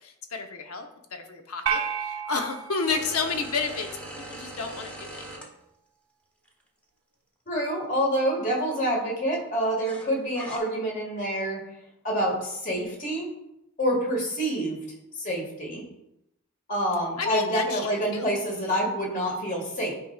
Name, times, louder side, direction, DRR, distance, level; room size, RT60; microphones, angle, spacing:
voice 1, 0.0-5.3 17.2-18.4, left 4 dB, 75° left, 5 dB, 0.8 m, -31 dB
sound 1, 1.7-4.1, right 7 dB, 80° right, 0.6 m, -32 dB
sound 2, 2.9-5.4 6.5-6.6 9.8-10.6, right 1 dB, 5° left, 0.9 m, -41 dB
voice 2, 7.5-11.6 12.0-13.3 13.8-14.8 15.2-15.8 16.7-19.9, equal, 35° left, -1 dB, 1.8 m, -27 dB
11.0 x 4.7 x 2.4 m, 0.82 s
head